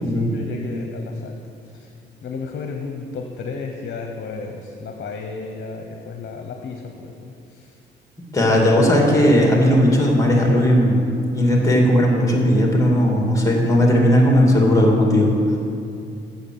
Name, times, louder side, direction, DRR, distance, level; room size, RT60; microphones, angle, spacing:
voice 1, 0.0-1.9 2.2-7.8, left 4 dB, 55° left, 3 dB, 1.0 m, -33 dB
voice 2, 8.3-11.0 11.3-15.4, equal, 15° left, -1 dB, 2.3 m, -16 dB
8.0 x 7.1 x 7.9 m, 2.6 s
cardioid pair, 90°, 20 cm